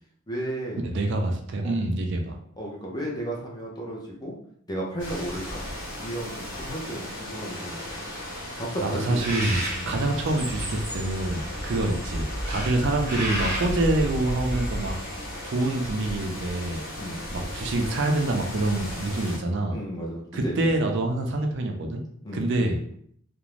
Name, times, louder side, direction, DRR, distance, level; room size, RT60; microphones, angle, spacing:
voice 1, 0.3-0.8 1.6-1.8 2.6-4.3 4.7-5.6 6.0-7.8 8.6-9.2 9.8-9.9 17.0-17.3 19.7-20.5 20.9-21.0 22.2-22.5, right 1 dB, 20° left, -2 dB, 0.6 m, -33 dB
voice 2, 0.8-2.4 8.8-15.0 15.4-16.8 17.3-19.8 20.3-22.0 22.3-22.8, right 2 dB, 55° right, 3 dB, 0.4 m, -26 dB
sound 1, 5.0-19.4, left 1 dB, 60° left, 0.8 m, -37 dB
Bird, 9.1-15.5, equal, 15° right, 0.8 m, -32 dB
2.5 x 2.0 x 3.0 m, 0.65 s
head